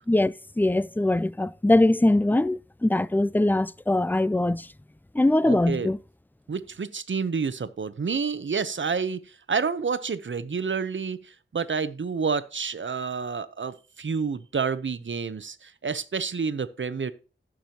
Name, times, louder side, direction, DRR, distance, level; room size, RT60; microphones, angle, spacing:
voice 1, 0.1-4.7 5.1-6.0, left 1 dB, 10° left, 0.4 m, -22 dB
voice 2, 5.4-5.9 6.5-17.1, right 5 dB, 70° right, 0.8 m, -29 dB
15.5 x 6.2 x 2.9 m
wide cardioid pair, 70°, 20 cm